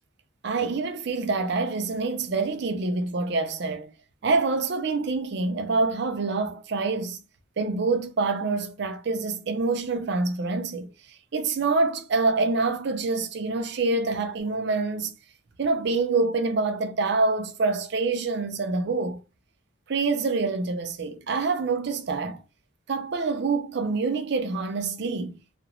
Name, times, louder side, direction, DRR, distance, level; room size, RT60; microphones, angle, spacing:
voice 1, 0.4-3.9 4.2-7.2 7.6-15.2 15.6-19.2 19.9-22.4 22.9-25.4, right 3 dB, 55° right, 0.5 m, -26 dB
2.4 x 2.1 x 2.9 m
head